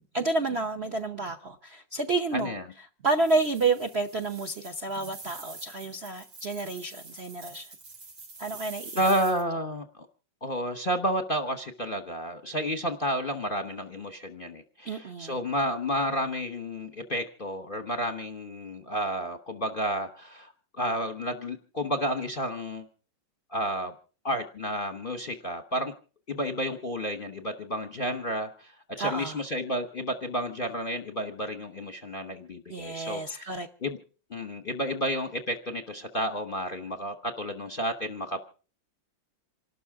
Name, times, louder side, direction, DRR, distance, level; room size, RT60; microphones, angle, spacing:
voice 1, 0.1-2.5 3.0-7.7 8.4-9.0 14.9-15.3 29.0-29.4 32.7-33.7, right 3 dB, 50° right, 6 dB, 0.8 m, -30 dB
voice 2, 2.3-2.6 8.9-10.1 10.4-22.9 23.5-23.9 24.2-25.9 26.3-34.0 34.3-38.4, equal, 35° left, 6 dB, 0.9 m, -31 dB
sound 1, 3.1-9.4, right 3 dB, 90° right, 4.3 m, -46 dB
27.5 x 12.5 x 3.6 m, 0.39 s
omnidirectional pair, 2.3 m